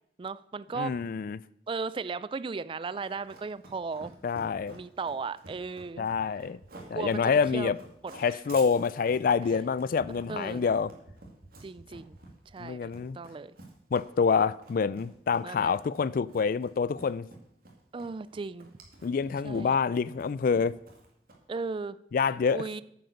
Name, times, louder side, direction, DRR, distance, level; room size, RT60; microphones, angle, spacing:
voice 1, 0.2-1.0 1.7-4.2 4.7-6.1 6.9-7.7 8.3-8.4 10.3-10.7 11.6-12.2 12.5-13.6 15.4-15.8 17.9-18.7 19.4-19.8 21.5-22.0 22.5-22.8, right 4 dB, 30° right, 0.3 m, -36 dB
voice 2, 0.7-1.4 4.2-4.8 6.0-6.6 6.9-7.8 8.2-10.9 12.6-13.2 13.9-17.3 19.0-20.8 22.1-22.6, left 5 dB, 50° left, 0.3 m, -27 dB
Run, 2.9-21.6, right 2 dB, 55° right, 2.3 m, -51 dB
9.4 x 7.7 x 6.9 m
head